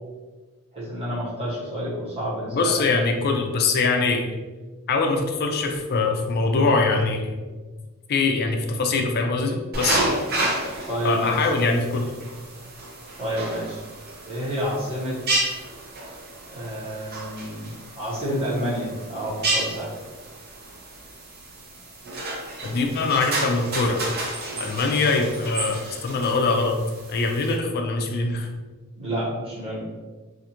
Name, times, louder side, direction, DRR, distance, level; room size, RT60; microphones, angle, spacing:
voice 1, 0.7-2.8 10.9-11.5 13.2-13.8 14.3-15.2 16.5-19.9 29.0-29.8, equal, 25° right, -9 dB, 0.9 m, -29 dB
voice 2, 2.5-4.2 4.9-7.3 8.1-10.0 11.0-12.1 22.6-24.0 24.6-26.8 27.1-28.5, left 3 dB, 45° left, 3 dB, 0.4 m, -23 dB
sound 1, 9.7-27.6, right 2 dB, 45° right, 0.5 m, -31 dB
2.5 x 2.4 x 2.8 m, 1.3 s
head